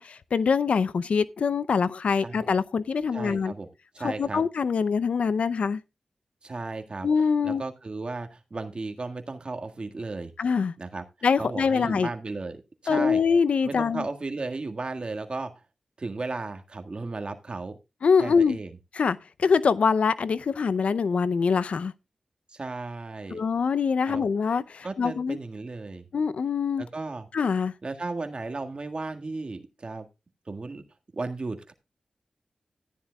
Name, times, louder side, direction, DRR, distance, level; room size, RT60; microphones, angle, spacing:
voice 1, 0.0-3.5 4.0-5.8 7.0-7.6 10.4-10.7 11.2-12.1 12.9-14.1 18.0-18.6 18.9-21.9 23.3-25.4 26.1-26.8 27.3-27.7, left 5 dB, 80° left, 0.5 m, -24 dB
voice 2, 3.1-3.7 3.9-4.4 6.4-7.1 7.4-10.3 10.8-11.0 11.4-13.2 13.6-15.5 16.0-17.8 18.2-18.7 22.5-23.4 24.0-24.3 24.8-26.0 26.8-27.3 27.8-30.1 30.5-30.8 31.1-31.7, right 3 dB, 50° right, 1.7 m, -35 dB
14.0 x 10.5 x 2.3 m
cardioid pair, 50°, 2 cm